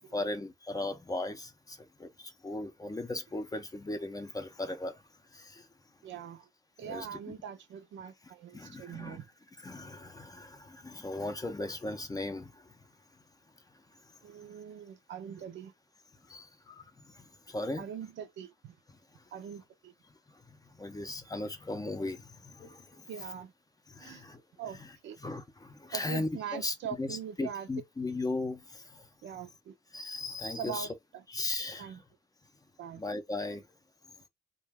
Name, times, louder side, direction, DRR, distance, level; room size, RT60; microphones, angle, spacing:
voice 1, 0.1-4.9 5.3-5.6 6.8-7.1 8.5-9.2 9.6-12.5 16.3-16.5 17.5-17.9 20.8-22.8 23.9-24.4 24.7-24.9 25.2-28.8 29.9-30.9 31.3-31.9 33.0-33.6, left 2 dB, 20° left, 0.5 m, -37 dB
voice 2, 6.0-6.5 6.8-9.3 14.2-15.7 17.8-18.7 19.3-19.9 23.1-23.5 24.0-24.2 24.6-25.2 25.9-27.7 29.2-29.8 30.6-31.2 31.8-32.0 32.8-33.0, right 8 dB, 70° right, 0.6 m, -42 dB
2.3 x 2.2 x 3.4 m
cardioid pair, 90°, 20 cm